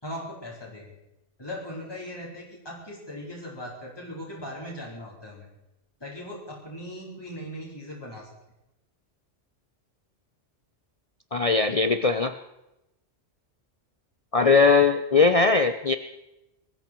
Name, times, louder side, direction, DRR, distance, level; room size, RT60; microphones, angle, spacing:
voice 1, 0.0-0.9 1.4-5.5 6.0-8.3, equal, 20° left, -4 dB, 4.6 m, -39 dB
voice 2, 11.3-12.3 14.3-16.0, left 4 dB, 35° left, 9 dB, 0.7 m, -20 dB
21.5 x 14.0 x 4.6 m, 0.91 s
omnidirectional pair, 1.2 m